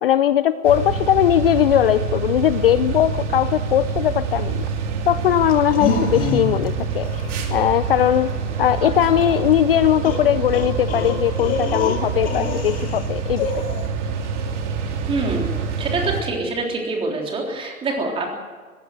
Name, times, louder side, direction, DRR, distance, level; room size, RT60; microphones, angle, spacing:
voice 1, 0.0-4.6 5.1-7.1 7.5-8.3 8.6-13.6, left 11 dB, 40° left, 14 dB, 0.6 m, -19 dB
sound 1, 0.6-16.2, right 5 dB, 55° right, 3.2 m, -26 dB
sound 2, 5.5-6.7 7.0-7.3 9.2-9.3 10.0-13.1 13.4-13.9, left 4 dB, 20° left, 2.1 m, -26 dB
voice 2, 15.1-15.5 15.8-18.3, right 3 dB, 10° right, 1 dB, 3.5 m, -25 dB
20.5 x 16.5 x 7.9 m, 1.5 s
hypercardioid pair, 145°, 43 cm